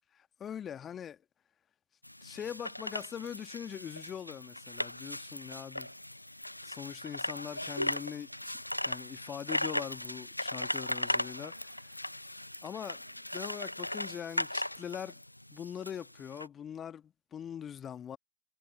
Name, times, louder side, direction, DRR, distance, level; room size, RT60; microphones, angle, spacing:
voice 1, 0.2-1.2 2.2-5.9 6.6-8.6 8.9-11.7 12.6-13.0 13.3-15.2 15.5-18.2, left 9 dB, 25° left, 1.7 m, -42 dB
sound 1, 2.0-16.5, left 1 dB, 85° left, 0.9 m, -38 dB
figure-of-eight pair, 90°, 0 cm